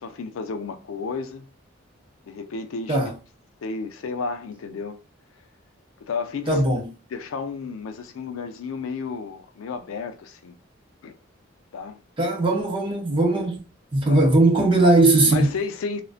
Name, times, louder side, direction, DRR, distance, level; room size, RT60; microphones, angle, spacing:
voice 1, 0.0-1.5 2.3-3.1 3.6-5.0 6.0-6.6 7.1-10.6 11.0-11.2 11.7-12.0 14.1-14.3 15.3-16.0, left 5 dB, 80° left, 0.4 m, -32 dB
voice 2, 6.5-6.9 12.2-13.6 13.9-15.5, right 2 dB, 25° right, 0.5 m, -19 dB
2.5 x 2.1 x 2.4 m
head